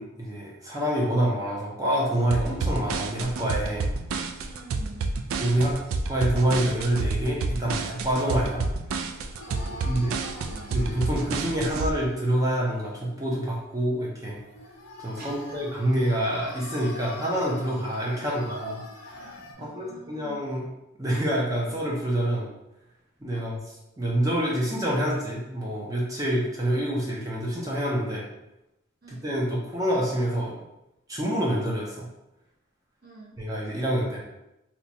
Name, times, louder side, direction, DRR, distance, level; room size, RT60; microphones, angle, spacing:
voice 1, 0.0-3.9 5.4-5.7 6.1-8.6 9.9-10.1 10.7-14.4 15.0-18.7 19.1-20.7 21.0-22.5 23.2-23.6 24.0-28.2 29.1-30.5 31.1-32.1 33.4-34.2, right 1 dB, 15° right, -4 dB, 0.5 m, -27 dB
sound 1, 2.3-11.9, right 3 dB, 75° right, 0.3 m, -29 dB
voice 2, 4.4-5.2 9.5-10.8 15.2-15.7 18.1-18.7 19.6-20.4 23.3-23.6 29.0-29.2 33.0-33.4, right 2 dB, 45° right, -4 dB, 0.9 m, -46 dB
sound 2, 9.4-13.4 13.8-13.9 14.2-19.5, left 2 dB, 70° left, 0.6 m, -45 dB
2.9 x 2.2 x 4.1 m, 0.92 s
head